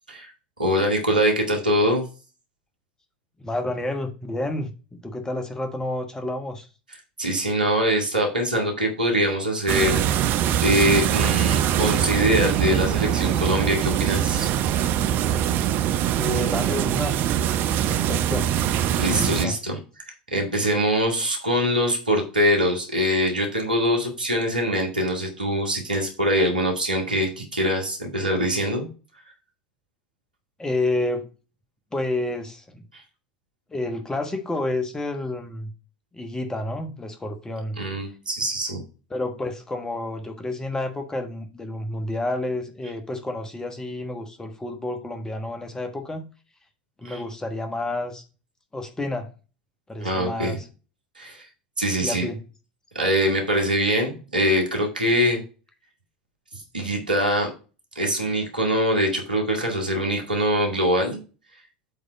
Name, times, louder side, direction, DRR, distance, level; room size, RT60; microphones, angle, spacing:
voice 1, 0.6-2.1 7.2-10.0 10.6-14.5 18.9-19.8 20.3-28.9 37.8-38.8 47.0-47.2 50.0-50.6 51.2-51.5 51.8-52.3 52.9-55.4 56.5-57.5 58.0-61.2, equal, 85° right, 2 dB, 2.0 m, -23 dB
voice 2, 3.4-4.7 5.0-6.7 16.1-17.1 17.9-18.6 19.0-19.6 30.6-31.3 31.9-32.8 33.7-35.7 36.1-37.8 39.1-46.3 47.0-48.2 48.7-49.3 49.9-50.7 52.0-52.4, left 2 dB, 15° left, 5 dB, 1.3 m, -29 dB
sound 1, 9.7-19.4, right 10 dB, 45° right, 0.6 m, -23 dB
7.9 x 3.7 x 5.0 m, 0.33 s
figure-of-eight pair, 75°, 4 cm